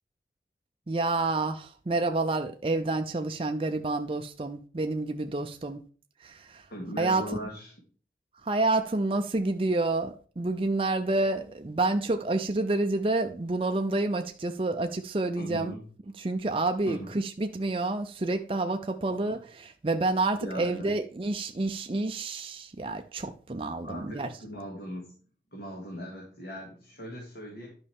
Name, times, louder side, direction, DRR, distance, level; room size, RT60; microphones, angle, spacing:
voice 1, 0.9-5.8 6.2-6.6 7.0-7.2 8.5-15.7 16.2-24.3, right 2 dB, 30° right, 0.5 m, -29 dB
voice 2, 6.7-7.7 15.4-15.8 16.9-17.1 19.0-19.3 20.4-20.9 23.8-25.1 25.5-27.7, equal, 65° left, 2.3 m, -39 dB
11.0 x 5.3 x 3.6 m
head